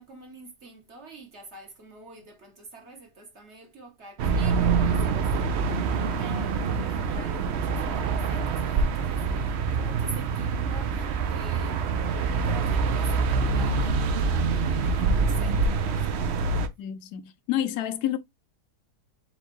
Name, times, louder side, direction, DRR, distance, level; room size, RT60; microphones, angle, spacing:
voice 1, 0.0-5.3 5.6-9.4 9.7-12.0 12.4-16.6, right 2 dB, 45° right, 1.3 m, -46 dB
sound 1, 4.2-16.7, right 4 dB, 70° right, 0.6 m, -25 dB
voice 2, 16.8-18.2, left 12 dB, 75° left, 1.1 m, -29 dB
4.3 x 3.9 x 3.0 m
omnidirectional pair, 1.7 m